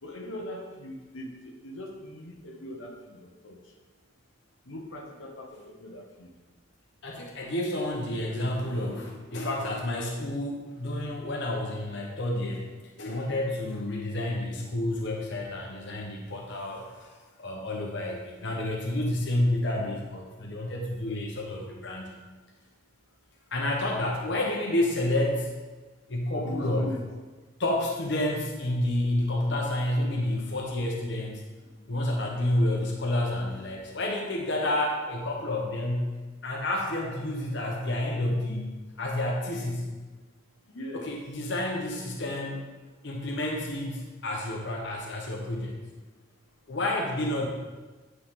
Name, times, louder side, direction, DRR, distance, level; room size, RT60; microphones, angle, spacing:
voice 1, 0.0-3.6 4.7-6.3 26.4-27.0 40.7-41.1, left 1 dB, 80° left, 1 dB, 1.2 m, -41 dB
voice 2, 7.0-12.7 13.0-22.1 23.5-25.5 26.1-26.9 27.6-31.4 31.9-39.9 40.9-42.7 43.0-45.8 46.7-47.5, left 1 dB, 60° left, 0 dB, 1.1 m, -30 dB
9.8 x 5.6 x 3.7 m, 1.3 s
head